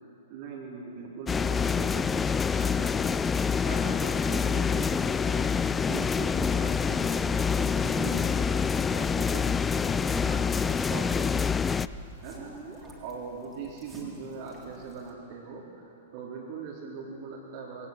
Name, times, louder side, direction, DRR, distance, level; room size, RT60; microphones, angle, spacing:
voice 1, 0.2-3.2 3.6-11.8 12.2-17.9, right 5 dB, 45° right, -5 dB, 3.9 m, -41 dB
sound 1, 1.3-11.9, left 6 dB, 15° left, 0.4 m, -26 dB
sound 2, 6.6-15.1, right 1 dB, 10° right, 3.9 m, -47 dB
21.0 x 18.0 x 7.5 m, 2.6 s
figure-of-eight pair, 105°, 0 cm